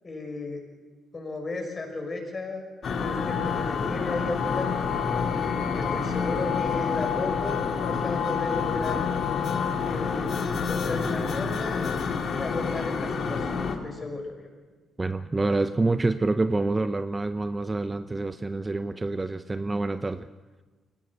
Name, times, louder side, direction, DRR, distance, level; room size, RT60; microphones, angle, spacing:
voice 1, 0.0-0.6 1.1-5.1 5.7-8.9 9.8-11.9 12.3-14.5, left 2 dB, 30° left, 2 dB, 6.3 m, -34 dB
sound 1, 2.8-13.8, left 5 dB, 55° left, 2.4 m, -29 dB
sound 2, 3.0-10.5, left 9 dB, 85° left, 3.0 m, -32 dB
voice 2, 15.0-20.3, right 2 dB, 20° right, 11 dB, 0.7 m, -27 dB
22.5 x 18.0 x 7.8 m, 1.3 s
cardioid pair, 90°, 0 cm